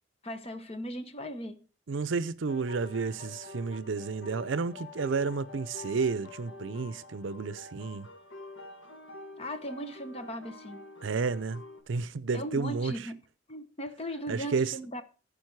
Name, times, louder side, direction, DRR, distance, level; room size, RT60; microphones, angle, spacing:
voice 1, 0.2-1.6 9.4-10.9 12.3-13.2 13.5-15.0, equal, 30° left, 0.9 m, -38 dB
voice 2, 1.9-8.1 11.0-12.9 14.3-14.7, right 4 dB, 75° right, 0.5 m, -31 dB
sound 1, 2.5-11.8, left 2 dB, 90° left, 1.5 m, -47 dB
15.0 x 5.2 x 4.6 m
head